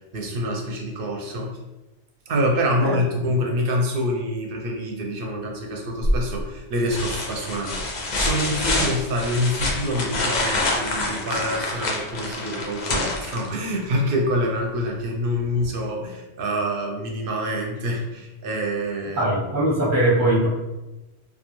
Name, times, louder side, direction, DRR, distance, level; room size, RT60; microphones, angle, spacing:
voice 1, 0.1-1.6 2.3-7.9 8.1-19.3, equal, 60° right, 0 dB, 0.6 m, -26 dB
sound 1, 6.0-6.4 6.9-13.8 15.6-15.7, left 2 dB, 55° left, 0.5 m, -26 dB
voice 2, 19.2-20.5, right 1 dB, 20° right, -5 dB, 0.6 m, -21 dB
2.3 x 2.2 x 2.9 m, 1.0 s
omnidirectional pair, 1.1 m